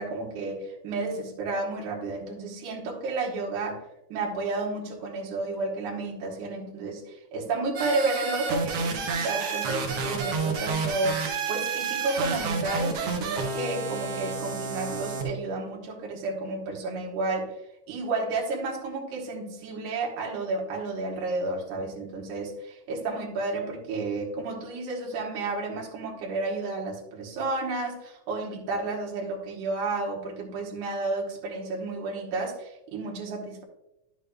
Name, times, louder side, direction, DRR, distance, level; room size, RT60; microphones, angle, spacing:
voice 1, 0.0-3.9 4.1-11.2 11.5-17.5 17.9-33.6, right 3 dB, 80° right, 0 dB, 2.7 m, -31 dB
sound 1, 7.8-15.2, right 4 dB, 60° right, 1.9 m, -30 dB
11.0 x 6.8 x 2.3 m, 0.91 s
omnidirectional pair, 3.6 m